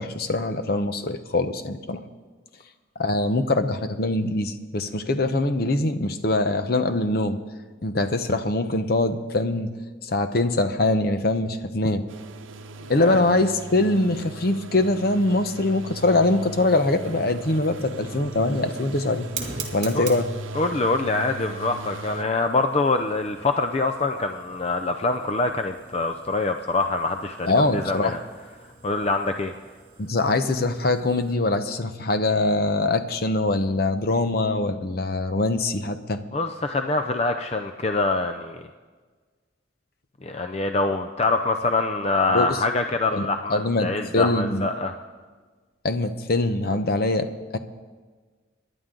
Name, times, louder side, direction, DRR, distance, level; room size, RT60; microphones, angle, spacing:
voice 1, 0.0-2.0 3.0-7.4 7.8-9.7 10.0-12.0 12.9-19.3 19.7-20.3 27.5-28.1 30.0-36.2 42.3-42.6 43.1-43.9 44.1-44.7 45.8-47.6, left 2 dB, 50° left, 9 dB, 0.8 m, -23 dB
sound 1, 12.1-22.2, right 2 dB, 90° right, 0.8 m, -38 dB
Fire, 15.6-31.3, right 5 dB, 35° right, 2.5 m, -44 dB
voice 2, 20.5-28.2 28.8-29.5 36.3-38.6 40.2-44.9, left 3 dB, 35° left, 6 dB, 0.5 m, -25 dB
26.5 x 11.0 x 3.8 m, 1.4 s
head